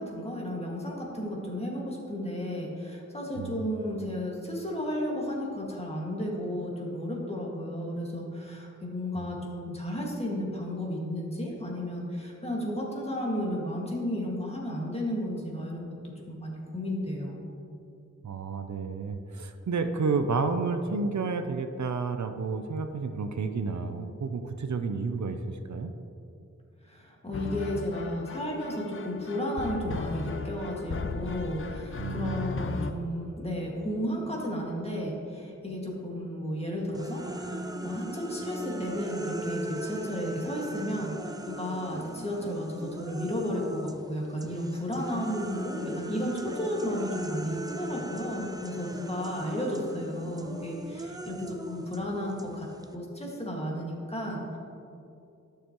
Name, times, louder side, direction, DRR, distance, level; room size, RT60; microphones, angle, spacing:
voice 1, 0.0-15.9 16.3-17.4 26.9-52.7 52.9-54.6, equal, 20° left, -3 dB, 1.8 m, -33 dB
voice 2, 3.4-3.7 9.2-9.3 18.2-25.9 32.0-32.5, right 4 dB, 70° right, 7 dB, 0.5 m, -31 dB
sound 1, 27.3-32.9, left 4 dB, 45° left, 0.5 m, -36 dB
sound 2, 36.9-44.0 44.4-52.9, right 1 dB, 15° right, 0.5 m, -39 dB
12.5 x 6.6 x 3.0 m, 2.6 s
wide cardioid pair, 70°, 30 cm